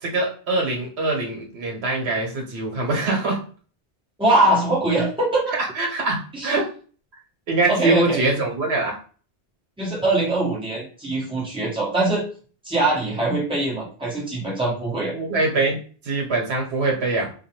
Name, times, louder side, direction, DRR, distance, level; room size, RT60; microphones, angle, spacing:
voice 1, 0.0-3.4 5.5-6.6 7.5-8.9 15.1-15.8 16.0-17.3, right 2 dB, 75° right, -1 dB, 1.2 m, -23 dB
voice 2, 4.2-5.4 6.3-6.5 7.7-8.2 9.8-12.2 12.6-15.1, right 2 dB, 5° right, -6 dB, 1.0 m, -22 dB
2.5 x 2.4 x 2.9 m, 0.40 s
omnidirectional pair, 1.1 m